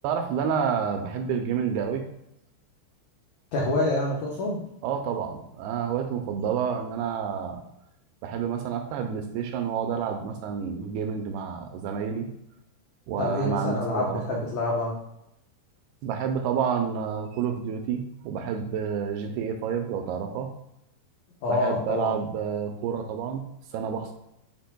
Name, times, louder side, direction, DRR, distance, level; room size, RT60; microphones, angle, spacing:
voice 1, 0.0-2.0 4.8-7.6 8.2-12.3 13.1-14.4 16.0-20.5 21.5-23.4 23.7-24.1, right 7 dB, 80° right, 5 dB, 2.4 m, -29 dB
voice 2, 3.5-4.6 13.2-14.9 21.4-22.1, left 2 dB, 80° left, -3 dB, 1.6 m, -27 dB
10.5 x 5.0 x 2.2 m, 0.82 s
omnidirectional pair, 4.8 m